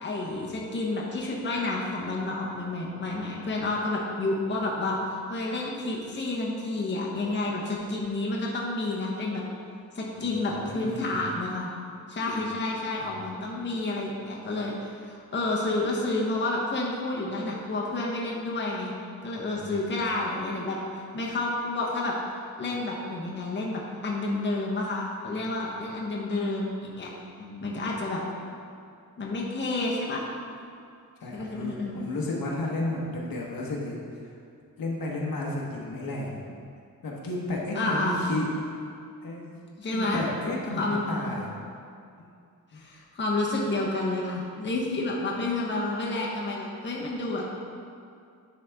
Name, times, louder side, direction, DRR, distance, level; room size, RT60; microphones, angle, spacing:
voice 1, 0.0-9.4 9.9-11.7 12.1-18.9 19.2-22.1 22.6-27.1 27.6-28.2 29.2-30.2 31.3-31.9 37.7-38.4 39.8-40.2 40.7-41.3 42.7-47.5, left 2 dB, 30° left, -3 dB, 0.9 m, -30 dB
voice 2, 10.1-11.2 12.3-12.4 13.0-13.3 19.5-20.0 27.4-27.7 31.2-34.0 34.3-34.4 34.8-36.4 37.0-38.5 39.2-39.6 39.9-41.5 42.2-42.3 42.7-42.8, left 1 dB, 75° left, -2 dB, 1.2 m, -33 dB
10.5 x 4.1 x 3.5 m, 2.4 s
wide cardioid pair, 145°, 35 cm